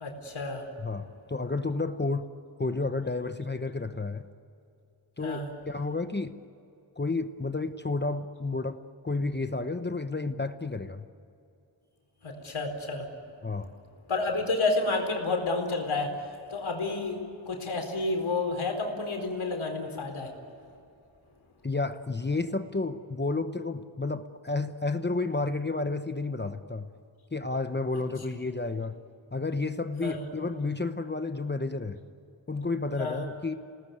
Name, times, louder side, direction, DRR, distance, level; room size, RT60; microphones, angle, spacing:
voice 1, 0.0-0.6 5.2-5.5 12.2-13.1 14.1-16.1 16.5-17.2 17.5-20.3 30.0-30.2 33.0-33.2, left 3 dB, 85° left, 3 dB, 4.4 m, -30 dB
voice 2, 0.8-2.3 2.6-4.2 5.2-6.3 7.0-11.0 13.4-13.7 21.6-26.9 27.3-28.9 29.3-32.0 32.5-33.5, left 3 dB, 20° left, 9 dB, 0.9 m, -31 dB
28.5 x 19.0 x 9.4 m, 2.6 s
wide cardioid pair, 115°, 47 cm